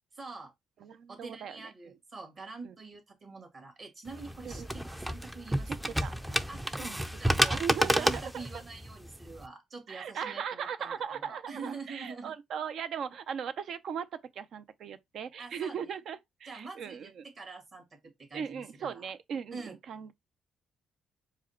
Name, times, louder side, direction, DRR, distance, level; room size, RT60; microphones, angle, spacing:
voice 1, 0.1-0.5 1.1-6.8 7.2-7.6 8.0-12.3 15.4-15.8 16.5-19.1 19.5-19.8, right 4 dB, 45° right, 2.0 m, -45 dB
voice 2, 0.8-2.0 2.6-2.8 4.4-4.7 5.7-6.1 6.8-7.0 7.4-8.5 9.9-17.3 18.3-20.1, right 7 dB, 65° right, 0.5 m, -38 dB
sound 1, 4.1-9.5, equal, 5° right, 0.4 m, -30 dB
4.8 x 2.1 x 4.2 m
cardioid pair, 90°, 0 cm